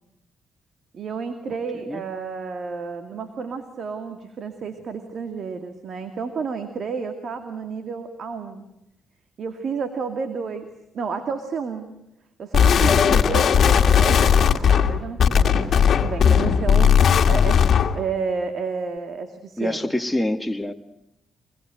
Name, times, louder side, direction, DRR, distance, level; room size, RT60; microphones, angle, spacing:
voice 1, 0.9-8.6 9.4-10.7 10.9-11.9 12.4-16.9 17.3-19.8, right 5 dB, 60° right, 7 dB, 2.4 m, -31 dB
sound 1, 12.5-18.0, left 7 dB, 60° left, 1.9 m, -17 dB
voice 2, 12.8-13.4 19.6-20.7, left 1 dB, 5° left, 3 dB, 1.8 m, -26 dB
25.5 x 21.0 x 7.8 m, 0.88 s
supercardioid pair, 65°, 0 cm